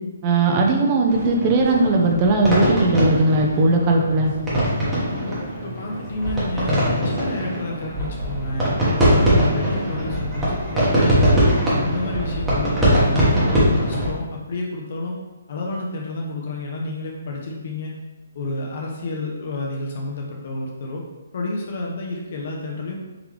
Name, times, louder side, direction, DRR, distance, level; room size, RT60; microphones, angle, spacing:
voice 1, 0.2-4.3, right 2 dB, 25° right, 1 dB, 0.6 m, -18 dB
sound 1, 1.1-14.1, equal, 5° right, 1.0 m, -21 dB
voice 2, 5.6-11.5 11.9-15.2 15.5-18.0 18.3-21.0 21.3-23.1, left 2 dB, 55° left, -1 dB, 0.6 m, -30 dB
3.7 x 3.4 x 3.1 m, 1.2 s
hypercardioid pair, 160°, 0 cm